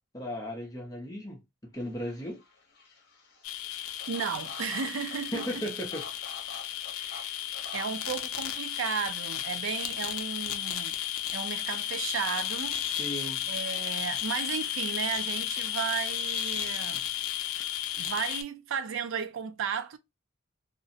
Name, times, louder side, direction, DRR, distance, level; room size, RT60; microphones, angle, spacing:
voice 1, 0.0-1.4 1.7-2.4 5.3-6.1 13.0-13.4, equal, 15° left, 0.5 m, -36 dB
sound 1, 1.7-9.9, left 3 dB, 50° left, 0.7 m, -49 dB
sound 2, 3.4-18.4, left 11 dB, 85° left, 0.4 m, -34 dB
voice 2, 4.1-5.6 7.0-7.3 7.7-11.0 11.3-12.8 13.5-17.1 18.0-20.0, right 7 dB, 65° right, 0.3 m, -34 dB
2.5 x 2.0 x 2.6 m
head